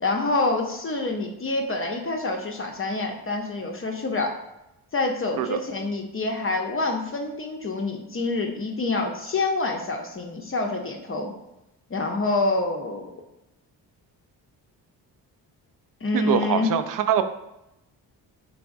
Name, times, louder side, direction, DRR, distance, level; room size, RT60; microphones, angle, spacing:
voice 1, 0.0-4.3 4.9-11.3 11.9-13.1 16.0-16.7, left 3 dB, 30° left, 2 dB, 0.6 m, -27 dB
voice 2, 16.1-17.2, right 9 dB, 50° right, 9 dB, 0.4 m, -23 dB
3.7 x 3.3 x 2.5 m, 0.89 s
supercardioid pair, 50°, 45 cm